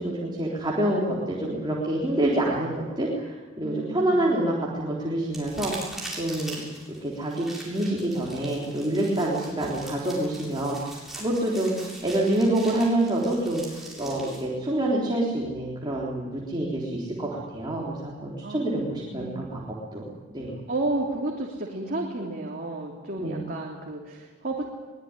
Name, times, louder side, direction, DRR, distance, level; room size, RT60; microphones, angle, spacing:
voice 1, 0.0-5.9 6.2-6.6 7.0-10.8 11.2-19.6 19.9-20.1 20.3-20.6 23.2-23.5, right 1 dB, 20° right, -4 dB, 3.8 m, -27 dB
voice 2, 3.6-4.4 18.4-19.5 20.7-24.6, right 2 dB, 40° right, -1 dB, 3.3 m, -32 dB
sound 1, 5.3-14.4, right 1 dB, ahead, 7.5 m, -42 dB
23.5 x 21.0 x 10.0 m, 1.3 s
head